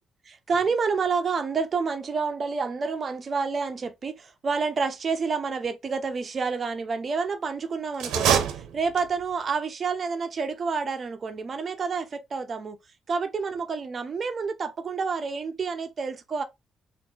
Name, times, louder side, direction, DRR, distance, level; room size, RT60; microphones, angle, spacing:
voice 1, 0.3-12.8 13.1-16.4, right 5 dB, 45° right, 0.7 m, -29 dB
sound 1, 7.9-9.3, right 9 dB, 85° right, 0.7 m, -25 dB
3.6 x 2.6 x 3.8 m
cardioid pair, 80°, 0 cm